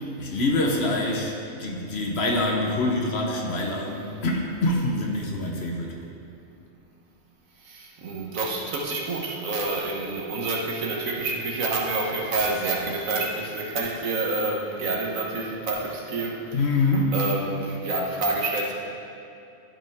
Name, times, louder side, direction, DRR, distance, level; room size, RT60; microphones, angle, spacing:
voice 1, 0.2-1.3 1.6-6.0 16.5-17.2, left 2 dB, 55° left, 0 dB, 1.2 m, -25 dB
voice 2, 7.6-16.6 17.1-18.7, right 3 dB, 90° right, -2 dB, 1.6 m, -28 dB
13.5 x 5.5 x 3.6 m, 2.8 s
omnidirectional pair, 1.4 m